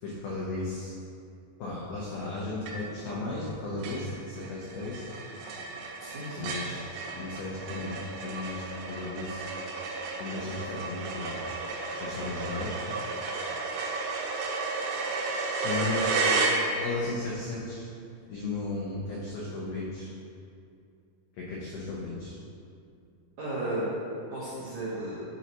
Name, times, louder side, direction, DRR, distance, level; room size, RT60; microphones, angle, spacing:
voice 1, 0.0-1.0 1.6-5.0 6.4-6.8 7.1-9.5 10.2-11.5 12.0-12.7 15.6-16.4 16.7-17.9 18.3-20.1 21.3-22.4, left 2 dB, 85° left, -6 dB, 2.1 m, -35 dB
sound 1, 2.7-3.1 3.5-3.6 3.8-17.1, right 3 dB, 90° right, 3.2 m, -32 dB
voice 2, 6.0-6.5 23.4-23.9 24.3-25.2, right 1 dB, 70° right, -13 dB, 1.7 m, -34 dB
10.5 x 4.1 x 3.0 m, 2.5 s
omnidirectional pair, 5.5 m